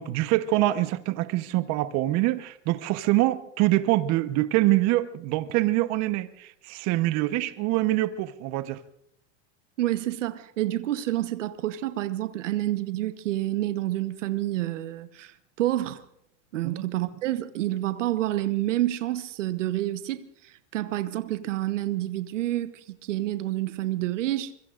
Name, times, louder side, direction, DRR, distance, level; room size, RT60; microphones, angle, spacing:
voice 1, 0.0-8.8 16.6-16.8, right 16 dB, 50° right, 1.0 m, -25 dB
voice 2, 9.8-16.0 16.5-24.5, right 14 dB, 85° right, 1.1 m, -28 dB
24.5 x 22.5 x 2.5 m
supercardioid pair, 120°, 36 cm